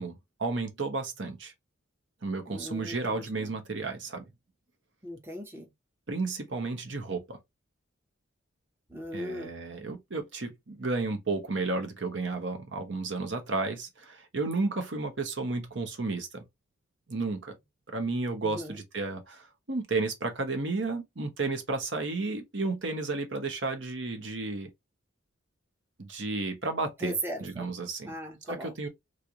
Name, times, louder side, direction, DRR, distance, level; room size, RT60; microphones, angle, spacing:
voice 1, 0.0-1.5 2.2-4.2 6.1-7.4 9.1-16.4 17.1-17.5 17.9-24.7 26.0-27.1 27.4-28.1 28.5-28.9, right 3 dB, 65° right, 0.9 m, -32 dB
voice 2, 2.5-3.6 5.0-5.7 8.9-9.5 18.4-18.8 27.0-27.7 28.0-28.8, right 1 dB, 10° right, 0.6 m, -38 dB
3.2 x 2.5 x 2.8 m
head